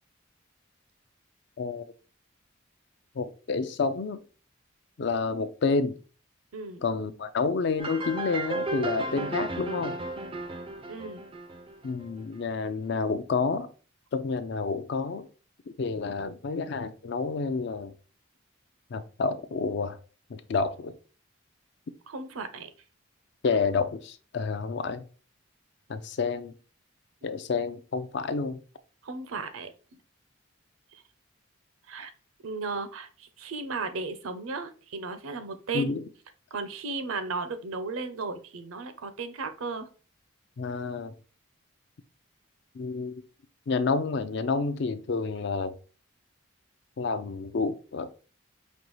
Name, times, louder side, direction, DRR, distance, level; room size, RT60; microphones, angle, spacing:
voice 1, 3.2-4.2 5.0-6.0 6.8-10.0 11.8-13.7 14.1-15.3 15.8-17.9 18.9-20.0 20.3-21.0 23.4-25.0 25.9-26.5 27.2-28.6 35.7-36.0 40.6-41.1 42.8-43.1 43.7-45.7 47.0-48.2, left 4 dB, 55° left, 0.4 m, -29 dB
sound 1, 7.8-12.4, right 2 dB, 25° right, 0.3 m, -34 dB
voice 2, 10.9-11.2 22.1-22.7 29.0-29.7 31.9-32.1 32.4-36.0 36.5-39.9, right 4 dB, 85° right, 0.6 m, -35 dB
5.2 x 2.3 x 3.1 m
head